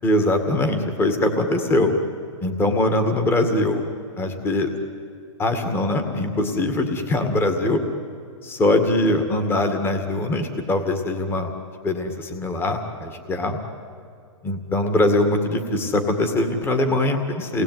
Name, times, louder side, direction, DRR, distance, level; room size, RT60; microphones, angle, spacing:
voice 1, 0.0-1.9 2.4-3.8 4.2-4.7 5.4-7.8 8.4-11.5 11.8-13.6 14.4-17.6, left 1 dB, 15° left, 6 dB, 2.0 m, -22 dB
29.0 x 20.0 x 9.4 m, 2.4 s
hypercardioid pair, 150°, 16 cm